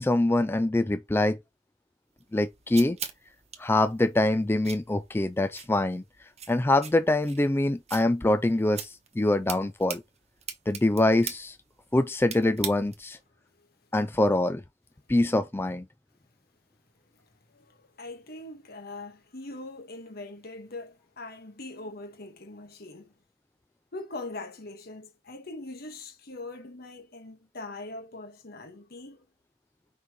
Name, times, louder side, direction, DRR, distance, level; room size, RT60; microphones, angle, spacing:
voice 1, 0.0-1.4 2.3-3.0 3.6-10.0 10.7-11.6 11.9-13.2 13.9-14.6 15.1-15.9, left 2 dB, 15° left, 0.4 m, -24 dB
sound 1, 2.2-13.2, right 8 dB, 35° right, 1.2 m, -42 dB
voice 2, 17.1-23.1 23.9-29.3, left 2 dB, 55° left, 1.6 m, -42 dB
5.8 x 5.3 x 3.1 m
head